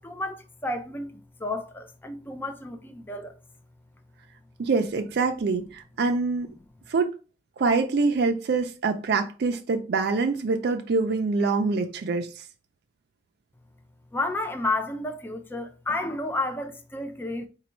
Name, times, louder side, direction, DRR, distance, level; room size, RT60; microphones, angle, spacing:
voice 1, 0.0-3.4 14.1-17.5, left 2 dB, 10° left, 0.4 m, -31 dB
voice 2, 4.6-6.5 6.9-7.1 7.6-12.4, right 4 dB, 65° right, 0.4 m, -25 dB
4.1 x 2.2 x 4.3 m
head